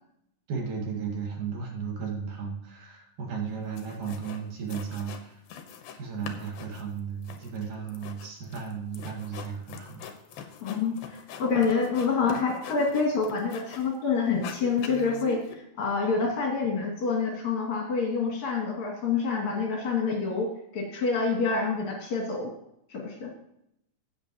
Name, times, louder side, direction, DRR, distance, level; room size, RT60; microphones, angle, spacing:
voice 1, 0.5-5.4 6.0-10.0, right 6 dB, 65° right, 0 dB, 3.4 m, -35 dB
sound 1, 3.5-3.6 3.8-4.4 4.7-6.0 6.2-14.0 14.3-15.5, left 8 dB, 80° left, 2.9 m, -43 dB
voice 2, 10.6-22.5 22.9-23.3, left 4 dB, 55° left, -2 dB, 3.6 m, -27 dB
15.5 x 8.5 x 3.0 m, 0.77 s
omnidirectional pair, 4.2 m